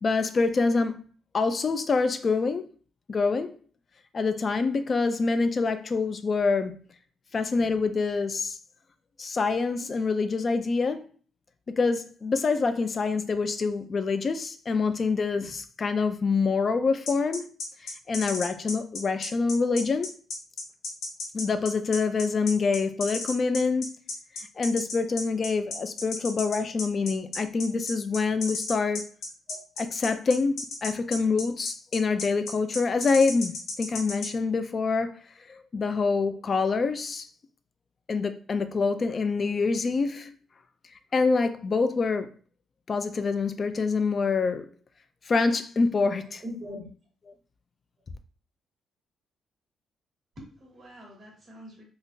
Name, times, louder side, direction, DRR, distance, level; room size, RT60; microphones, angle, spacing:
voice 1, 0.0-1.1 1.3-2.7 3.1-3.6 4.1-6.8 7.3-8.6 9.2-11.1 11.7-17.5 17.8-20.1 21.3-24.0 24.4-29.1 30.0-35.2 35.5-37.3 38.1-40.4 41.1-42.3 42.9-44.7 45.3-46.4, left 4 dB, 35° left, 0.3 m, -26 dB
sound 1, 17.1-34.3, left 3 dB, 70° left, 0.8 m, -34 dB
voice 2, 46.4-46.9 50.3-51.8, equal, 35° right, 1.4 m, -42 dB
3.6 x 2.4 x 2.7 m
cardioid pair, 125°, 0 cm